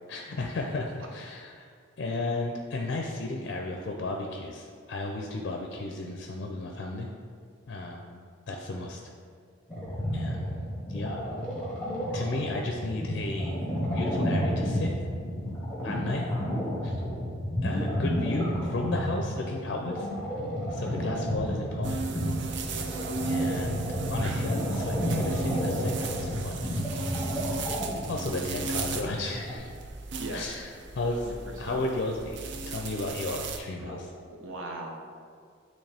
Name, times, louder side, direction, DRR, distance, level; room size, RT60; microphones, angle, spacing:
voice 1, 0.1-1.7 2.0-7.1 7.7-8.2 8.5-9.0 10.1-11.2 12.1-13.6 13.9-14.9 15.8-16.3 16.8-17.0 17.6-20.1 20.7-22.1 23.2-27.1 27.4-27.6 28.1-29.7 30.3-34.1, left 2 dB, 55° left, 1 dB, 0.4 m, -34 dB
sound 1, 9.7-29.6, equal, 5° left, 1.3 m, -31 dB
sound 2, 21.8-33.6, right 3 dB, 60° right, 0.4 m, -36 dB
voice 2, 30.2-30.6 31.2-31.3 31.7-31.8 33.8-34.1 34.4-35.2, right 2 dB, 80° right, 1 dB, 0.8 m, -39 dB
8.8 x 3.2 x 3.4 m, 2.1 s
head